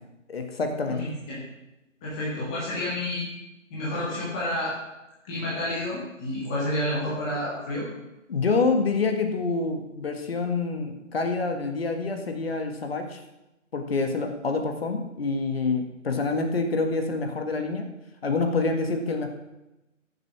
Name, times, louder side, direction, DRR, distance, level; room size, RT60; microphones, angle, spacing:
voice 1, 0.3-1.2 8.3-13.2 13.7-17.9 18.2-19.3, left 3 dB, 50° left, 5 dB, 1.8 m, -27 dB
voice 2, 0.9-1.4 2.0-3.3 3.7-4.7 5.2-7.8, left 1 dB, 5° left, -8 dB, 0.7 m, -30 dB
14.5 x 7.1 x 6.1 m, 0.96 s
figure-of-eight pair, 155°, 39 cm